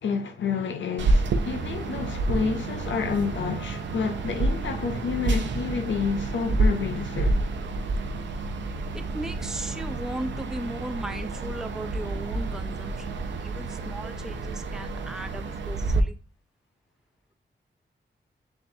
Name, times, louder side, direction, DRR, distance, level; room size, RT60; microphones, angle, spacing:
voice 1, 0.0-7.4, left 5 dB, 80° left, 0.5 m, -29 dB
sound 1, 1.0-16.0, right 3 dB, 75° right, 0.5 m, -29 dB
voice 2, 8.9-16.1, right 1 dB, 5° right, 0.3 m, -37 dB
6.8 x 2.4 x 2.6 m
wide cardioid pair, 130°, 19 cm